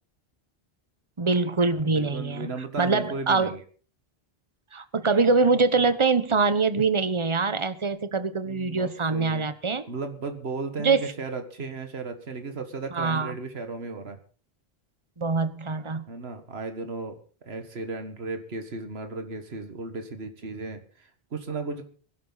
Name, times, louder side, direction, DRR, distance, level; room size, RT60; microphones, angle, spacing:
voice 1, 1.2-2.5 2.8-3.5 4.7-9.8 10.8-11.1 12.9-13.3 15.2-16.0, right 4 dB, 30° right, 12 dB, 1.1 m, -24 dB
voice 2, 1.8-3.6 8.5-9.5 9.9-14.2 16.1-17.2 17.5-21.8, right 3 dB, 80° right, 7 dB, 1.9 m, -35 dB
22.0 x 11.5 x 4.0 m, 0.40 s
omnidirectional pair, 1.1 m